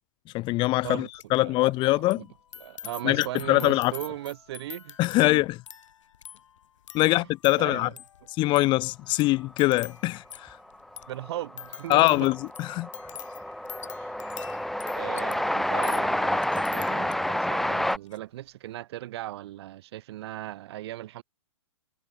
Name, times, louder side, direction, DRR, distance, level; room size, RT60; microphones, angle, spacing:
voice 1, 0.3-2.3 3.0-3.9 5.0-5.6 6.9-7.9 8.4-10.6 11.9-12.9, left 19 dB, 30° left, 1.7 m, -23 dB
sound 1, 0.9-1.4 1.6-17.4 17.8-18.2, left 9 dB, 70° left, 3.9 m, -46 dB
voice 2, 1.9-2.3 2.6-5.0 7.1-7.3 7.6-7.9 11.1-12.3 13.9-14.1 14.9-21.2, right 14 dB, 50° right, 6.3 m, -37 dB
Train, 10.5-10.6 10.8-18.0, left 1 dB, ahead, 1.1 m, -29 dB
hypercardioid pair, 140°, 17 cm